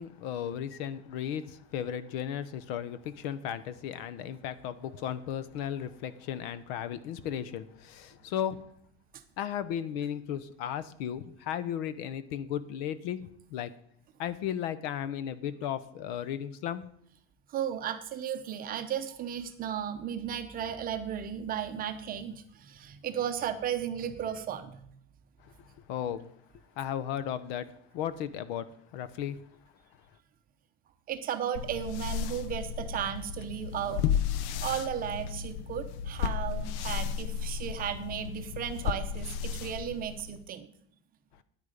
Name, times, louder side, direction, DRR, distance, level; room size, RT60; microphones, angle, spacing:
voice 1, 0.0-8.6 9.4-13.2 13.5-13.7 14.2-16.8 25.9-26.3 26.8-27.7 27.9-28.7 28.9-29.4, left 9 dB, 65° left, 14 dB, 0.9 m, -35 dB
voice 2, 17.5-24.9 31.1-34.1 34.6-40.7, right 9 dB, 25° right, 7 dB, 0.7 m, -35 dB
sound 1, 31.5-40.5, left 8 dB, 90° left, 0.8 m, -34 dB
10.0 x 8.7 x 5.1 m, 0.66 s
cardioid pair, 170°, 33 cm